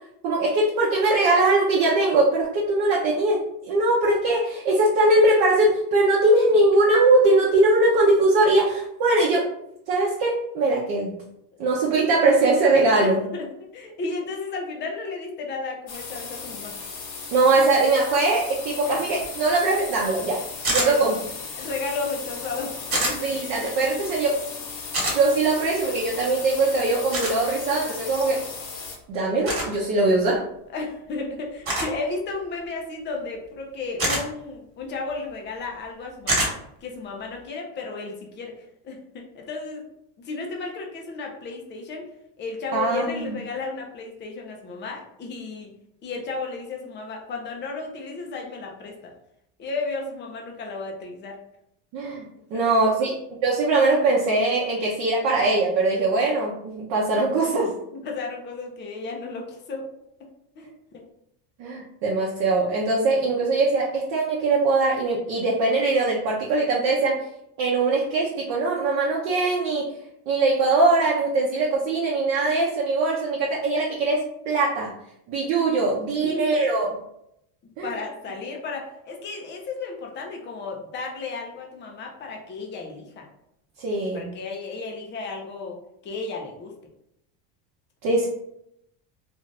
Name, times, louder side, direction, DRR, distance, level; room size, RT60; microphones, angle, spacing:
voice 1, 0.2-9.5 9.9-11.2 11.6-13.2 17.3-21.2 23.2-24.4 25.1-28.5 29.1-30.4 42.7-43.4 51.9-53.1 53.4-57.7 61.6-67.2 67.6-69.8 70.3-74.9 75.3-76.9 77.8-77.9 83.8-84.3 88.0-88.3, right 2 dB, 50° right, -4 dB, 0.7 m, -21 dB
voice 2, 13.0-16.8 18.9-19.1 20.8-21.0 21.6-23.2 30.7-39.9 40.2-42.1 42.4-45.7 46.0-49.1 49.6-51.4 52.5-52.7 53.0-53.1 57.9-59.9 60.6-60.7 60.9-61.1 63.1-63.2 76.2-76.5 77.8-83.3 84.1-86.7, left 3 dB, 25° left, 1 dB, 0.4 m, -33 dB
sound 1, 15.9-29.0, left 5 dB, 70° left, 1.1 m, -36 dB
sound 2, 20.6-20.9 22.9-23.1 24.9-25.2 27.1-27.3 29.4-29.7 31.7-31.9 34.0-34.2 36.3-36.5, right 1 dB, 25° right, 1.2 m, -24 dB
2.6 x 2.4 x 3.1 m, 0.77 s
supercardioid pair, 135°, 49 cm